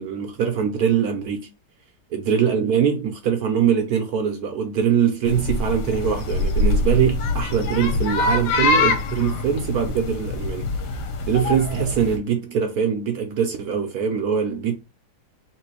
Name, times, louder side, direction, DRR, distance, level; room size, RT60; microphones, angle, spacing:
voice 1, 0.0-1.5 2.1-10.6 11.3-14.8, right 8 dB, 70° right, 0.9 m, -22 dB
sound 1, 5.2-12.2, left 2 dB, 70° left, 1.4 m, -24 dB
3.3 x 3.0 x 4.6 m
omnidirectional pair, 2.3 m